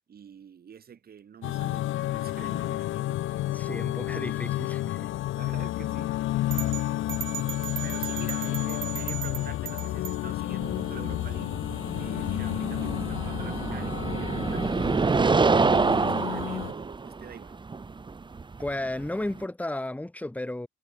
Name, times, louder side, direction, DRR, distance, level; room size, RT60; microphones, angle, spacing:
voice 1, 0.1-3.5 5.3-6.2 7.8-11.5 11.9-17.5, right 8 dB, 50° right, 2.9 m, -47 dB
sound 1, 1.4-16.7, left 15 dB, 80° left, 0.9 m, -31 dB
voice 2, 3.5-5.1 18.6-20.7, left 1 dB, 5° left, 2.2 m, -33 dB
sound 2, 6.5-10.2, right 13 dB, 75° right, 1.2 m, -37 dB
sound 3, 10.6-19.5, right 4 dB, 25° right, 1.2 m, -27 dB
cardioid pair, 90°, 20 cm